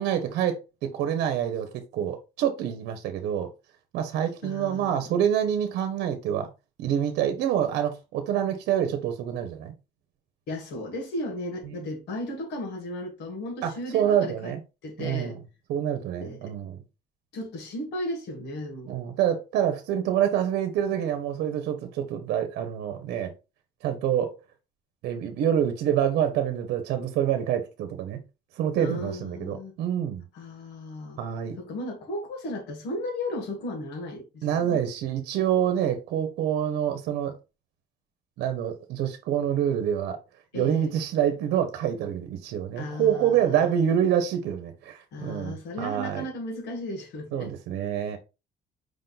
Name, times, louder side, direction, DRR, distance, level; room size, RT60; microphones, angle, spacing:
voice 1, 0.0-3.5 3.9-6.5 6.8-9.7 11.6-11.8 13.6-14.6 15.0-15.4 15.7-16.8 18.9-23.3 23.8-24.3 25.0-28.2 28.5-30.2 31.2-31.6 34.4-37.3 38.4-40.2 40.5-46.2 47.3-48.2, right 9 dB, 80° right, 0.9 m, -26 dB
voice 2, 4.4-5.1 10.5-14.5 14.8-15.4 16.2-16.5 17.3-18.9 28.8-29.8 30.3-31.2 31.6-34.8 40.5-41.0 42.8-43.7 45.1-47.5, left 1 dB, 85° left, 2.0 m, -35 dB
5.1 x 2.6 x 3.8 m
cardioid pair, 110°, 17 cm